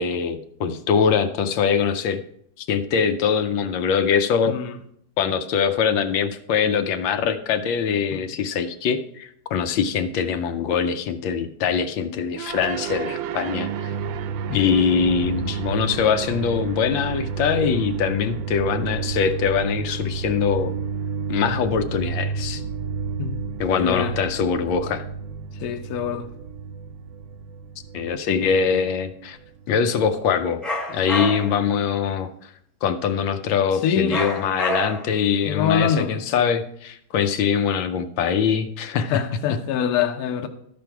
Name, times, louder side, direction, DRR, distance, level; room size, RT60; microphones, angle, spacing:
voice 1, 0.0-2.2 2.6-4.5 5.2-13.9 14.5-20.7 21.3-22.6 23.6-25.1 27.9-29.4 29.7-30.6 30.9-32.5 32.8-39.2 39.5-39.6, left 7 dB, 80° left, 1.3 m, -23 dB
sound 1, 12.4-30.7, right 6 dB, 80° right, 1.4 m, -31 dB
voice 2, 23.8-24.1 25.6-26.3 33.8-34.2 35.4-36.1 39.1-40.5, left 8 dB, 60° left, 1.1 m, -24 dB
sound 2, 30.6-31.6 34.1-35.2, equal, ahead, 0.7 m, -28 dB
13.0 x 5.2 x 4.6 m
omnidirectional pair, 2.1 m